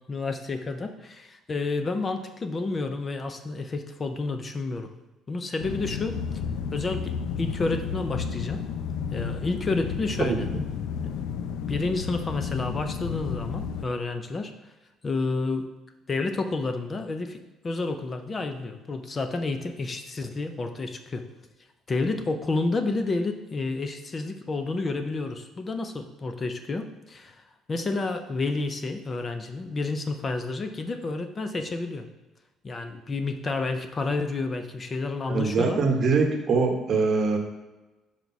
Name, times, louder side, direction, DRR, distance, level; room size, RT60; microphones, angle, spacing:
voice 1, 0.1-4.9 5.3-6.2 6.7-8.6 9.1-10.5 11.0-11.1 11.7-14.5 15.0-15.7 16.1-21.3 21.9-27.4 27.7-32.1 32.6-35.8, left 3 dB, 20° left, 8 dB, 0.4 m, -30 dB
sound 1, 5.6-13.9, left 7 dB, 85° left, 0.4 m, -32 dB
voice 2, 35.3-37.4, right 4 dB, 35° right, 1 dB, 0.9 m, -23 dB
5.6 x 4.6 x 4.0 m, 1.1 s
cardioid pair, 165°, 0 cm